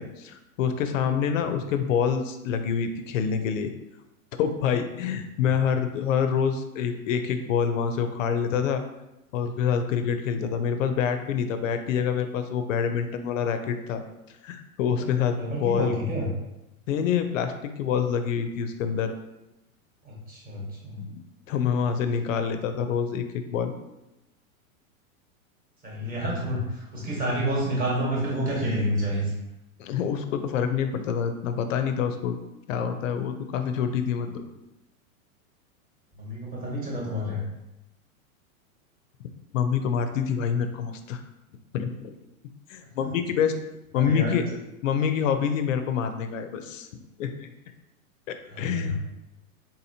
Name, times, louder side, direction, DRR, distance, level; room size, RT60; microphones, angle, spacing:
voice 1, 0.0-3.7 4.4-8.8 9.3-14.0 14.4-16.0 16.9-19.1 21.0-21.1 21.5-23.7 29.8-32.4 32.7-34.4 39.5-41.2 41.7-42.1 42.7-43.5 43.9-44.4 44.8-47.5 48.3-48.9, left 7 dB, 65° left, 8 dB, 0.5 m, -26 dB
voice 2, 15.0-16.3 20.0-21.0 25.8-29.3 36.2-37.4 43.9-44.4 48.5-48.9, equal, 20° right, -4 dB, 1.1 m, -29 dB
3.8 x 2.8 x 2.7 m, 0.93 s
hypercardioid pair, 140°, 43 cm